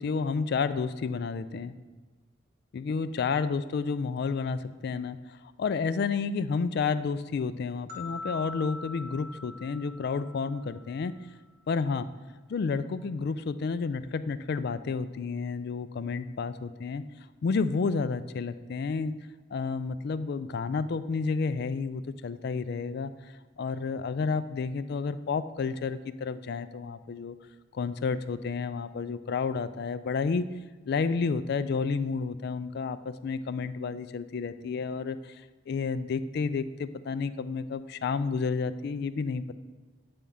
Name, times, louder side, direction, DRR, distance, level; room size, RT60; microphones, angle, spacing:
voice 1, 0.0-1.7 2.7-11.1 11.7-12.1 12.5-17.0 17.4-19.1 19.5-23.1 23.6-27.4 27.7-30.5 30.9-39.5, left 5 dB, 55° left, 13 dB, 0.3 m, -30 dB
sound 1, 7.9-11.0, left 3 dB, 50° right, 1.4 m, -42 dB
8.6 x 3.5 x 5.4 m, 1.3 s
head